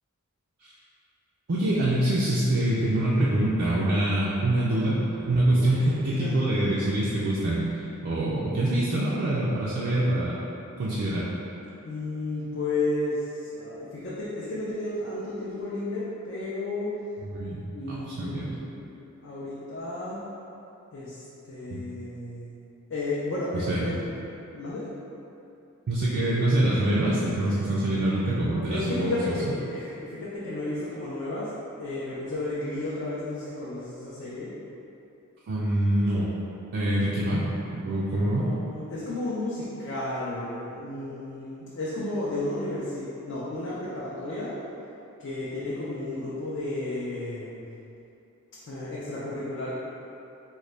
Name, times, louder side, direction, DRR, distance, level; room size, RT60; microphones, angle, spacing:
voice 1, 1.5-10.4 10.8-11.3 17.3-17.6 17.9-18.5 21.7-21.8 23.7-24.0 25.9-29.2 35.5-36.3 36.7-37.5 37.8-38.5, right 1 dB, 50° right, -8 dB, 0.4 m, -25 dB
voice 2, 11.8-16.9 17.7-20.2 20.9-22.5 22.9-24.0 24.5-24.9 28.4-34.5 38.4-44.5 45.2-47.6 48.7-49.7, left 2 dB, 50° left, -8 dB, 0.5 m, -33 dB
3.8 x 2.2 x 3.2 m, 2.8 s
head